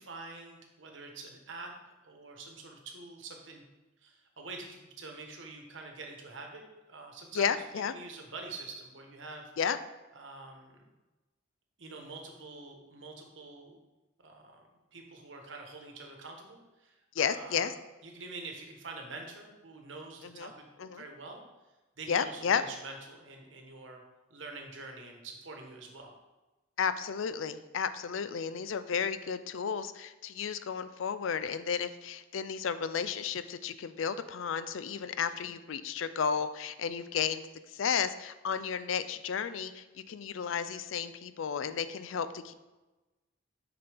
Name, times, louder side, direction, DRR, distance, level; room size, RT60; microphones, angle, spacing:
voice 1, 0.0-1.7 2.0-3.6 4.0-6.6 6.9-7.5 7.9-9.5 10.1-10.8 11.8-13.8 14.2-14.6 14.9-17.6 18.0-21.4 22.0-24.0 24.3-26.1, right 3 dB, 65° right, 2 dB, 1.2 m, -46 dB
voice 2, 7.3-7.9 9.6-9.8 17.2-17.7 20.2-20.5 20.8-21.0 22.1-22.6 26.8-37.4 37.7-42.5, left 7 dB, 75° left, 12 dB, 0.4 m, -33 dB
6.7 x 5.9 x 3.4 m, 1.1 s
head